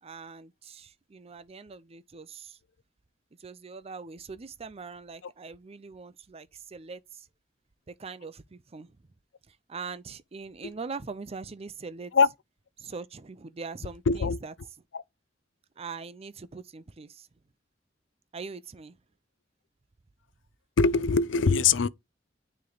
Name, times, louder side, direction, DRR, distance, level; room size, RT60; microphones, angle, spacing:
voice 1, 0.0-2.6 3.4-7.3 7.9-9.0 9.5-12.1 12.8-14.5 15.8-17.3 18.3-19.0, right 4 dB, 35° right, 0.5 m, -42 dB
voice 2, 14.1-14.4 20.8-21.9, left 5 dB, 85° left, 0.5 m, -22 dB
9.5 x 3.2 x 4.0 m
head